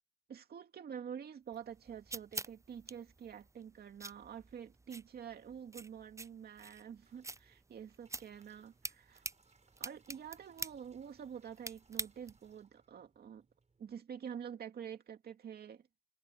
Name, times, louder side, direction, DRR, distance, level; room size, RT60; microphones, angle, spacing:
voice 1, 0.3-9.2 9.8-13.5 13.8-15.8, right 8 dB, 85° right, 2.3 m, -47 dB
sound 1, 1.5-12.6, right 3 dB, 20° right, 0.5 m, -48 dB
sound 2, 7.0-14.0, right 4 dB, 45° right, 5.9 m, -72 dB
cardioid pair, 55°, 16 cm